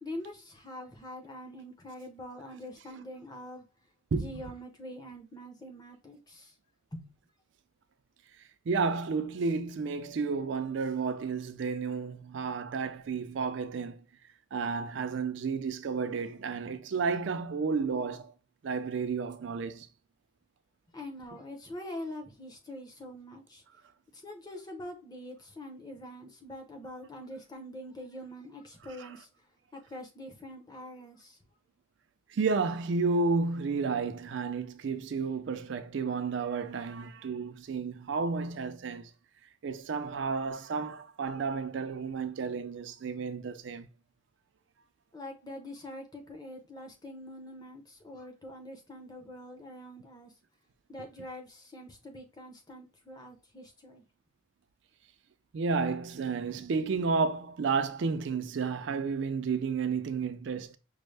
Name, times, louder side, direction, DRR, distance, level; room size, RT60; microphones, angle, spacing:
voice 1, 0.0-3.6 4.1-6.5 6.9-7.1 20.9-23.6 24.1-29.3 29.7-31.4 45.1-50.3 50.9-54.0, left 1 dB, 20° left, 0.7 m, -44 dB
voice 2, 8.7-14.0 14.5-18.3 18.6-19.9 29.0-29.1 32.3-39.1 39.6-43.9 55.5-60.8, right 4 dB, 60° right, 0.4 m, -31 dB
5.2 x 2.1 x 3.2 m
head